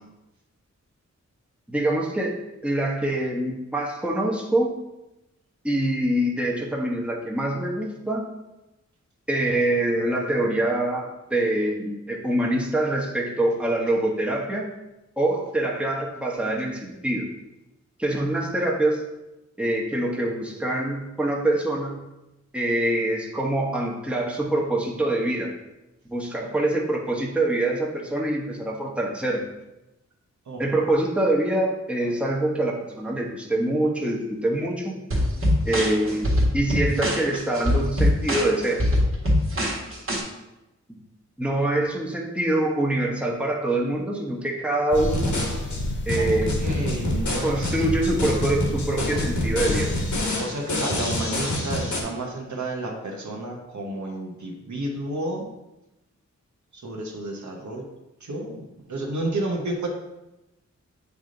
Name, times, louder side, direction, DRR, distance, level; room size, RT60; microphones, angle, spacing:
voice 1, 1.7-4.7 5.6-8.2 9.3-14.7 15.2-17.3 18.0-19.0 19.6-22.0 22.5-25.5 26.1-29.5 30.6-34.9 35.6-36.3 36.5-38.9 41.4-45.4 46.1-46.5 47.4-49.9, right 1 dB, 5° right, -2 dB, 1.0 m, -25 dB
sound 1, 35.1-40.2, left 1 dB, 45° right, 1.6 m, -23 dB
sound 2, 44.9-52.0, left 1 dB, 85° left, 1.4 m, -28 dB
sound 3, 44.9-50.3, left 1 dB, 40° left, 0.5 m, -30 dB
voice 2, 46.6-47.8 50.3-55.5 56.7-57.9 58.2-59.9, right 1 dB, 75° right, 0 dB, 1.2 m, -31 dB
8.1 x 3.5 x 3.9 m, 0.97 s
wide cardioid pair, 95°, 29 cm